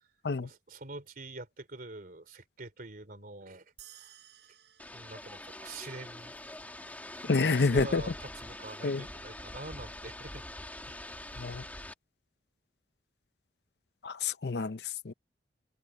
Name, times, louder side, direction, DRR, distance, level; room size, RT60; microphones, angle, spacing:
voice 1, 0.4-4.1 4.9-6.4 7.2-10.4 10.9-11.1, right 2 dB, 55° right, 3.4 m, -45 dB
sound 1, 3.8-6.5, right 12 dB, 75° right, 6.4 m, -57 dB
sound 2, 4.8-11.9, left 1 dB, 10° left, 2.4 m, -44 dB
voice 2, 7.3-8.0 8.8-9.0 11.4-11.6 14.0-14.8 15.0-15.1, left 4 dB, 65° left, 0.6 m, -28 dB
head